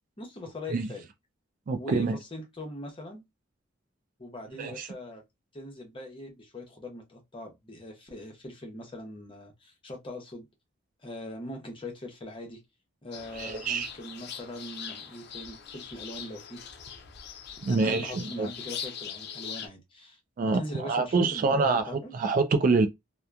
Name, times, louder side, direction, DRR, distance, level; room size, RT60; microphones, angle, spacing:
voice 1, 0.2-1.0 1.8-3.2 4.2-5.2 5.5-10.5 11.0-12.6 13.0-16.6 17.7-20.2 20.5-22.1, left 1 dB, 25° left, 0.8 m, -41 dB
voice 2, 1.7-2.2 4.6-4.9 13.4-13.9 17.6-18.5 20.4-21.8 22.1-22.9, right 4 dB, 45° right, 0.3 m, -26 dB
sound 1, 13.1-19.7, left 7 dB, 60° left, 0.5 m, -42 dB
2.8 x 2.1 x 2.3 m
head